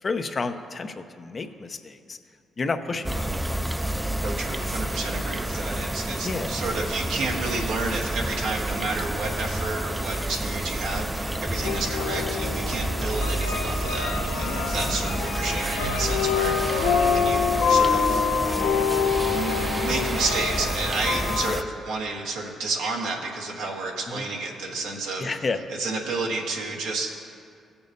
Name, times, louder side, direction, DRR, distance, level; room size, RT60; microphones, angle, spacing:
voice 1, 0.0-2.2 2.6-3.6 4.1-4.3 6.2-6.5 14.4-14.7 21.5-21.6 24.1-24.2 25.2-25.6, left 4 dB, 45° left, 7 dB, 0.6 m, -31 dB
sound 1, 3.0-21.6, right 1 dB, 10° right, 0.4 m, -29 dB
voice 2, 4.2-18.3 19.2-25.3 25.8-27.1, right 3 dB, 85° right, -1 dB, 1.3 m, -31 dB
sound 2, 11.6-21.6, left 6 dB, 85° left, 0.6 m, -26 dB
sound 3, 15.4-20.7, right 3 dB, 45° right, 0.9 m, -38 dB
16.0 x 7.0 x 2.6 m, 2.4 s
supercardioid pair, 60°, 0 cm